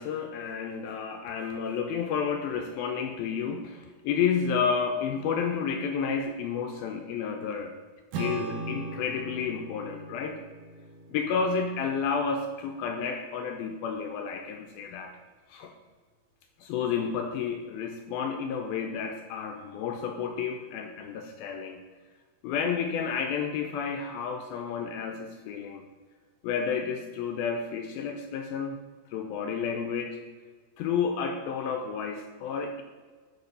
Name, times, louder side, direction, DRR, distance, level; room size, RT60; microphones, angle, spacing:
voice 1, 0.0-7.7 8.2-10.4 11.1-15.1 15.5-15.7 16.6-21.8 22.4-25.8 26.4-28.8 29.1-30.2 30.8-32.8, left 6 dB, 85° left, 4 dB, 2.2 m, -31 dB
Acoustic guitar / Strum, 8.1-12.8, right 2 dB, 70° right, 2.0 m, -39 dB
12.0 x 5.0 x 5.4 m, 1.5 s
omnidirectional pair, 4.8 m